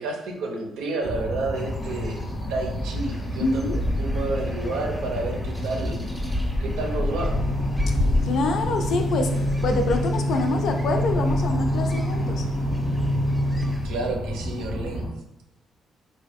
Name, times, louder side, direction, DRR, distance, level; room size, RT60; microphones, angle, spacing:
voice 1, 0.0-2.2 2.5-7.4 13.8-15.1, right 3 dB, 90° right, 0.6 m, -30 dB
sound 1, 1.0-15.1, equal, 90° left, 0.9 m, -31 dB
sound 2, 1.5-13.9, left 1 dB, ahead, 0.6 m, -31 dB
voice 2, 3.4-3.8 8.2-12.5, left 3 dB, 70° left, 0.4 m, -26 dB
sound 3, 7.2-13.7, equal, 45° right, 0.5 m, -26 dB
3.6 x 2.2 x 3.4 m
cardioid pair, 90°, 0 cm